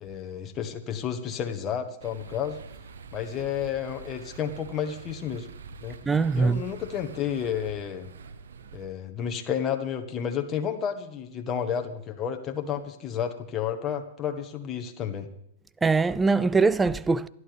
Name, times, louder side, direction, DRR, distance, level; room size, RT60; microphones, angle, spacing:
voice 1, 0.0-2.6 3.1-5.5 5.8-6.0 6.3-8.1 8.7-15.3, left 8 dB, 30° left, 1.6 m, -31 dB
sound 1, 2.0-8.9, right 5 dB, 75° right, 1.1 m, -45 dB
voice 2, 6.1-6.6 15.8-17.3, right 4 dB, 15° right, 0.5 m, -22 dB
27.5 x 11.0 x 3.5 m
hypercardioid pair, 105°, 0 cm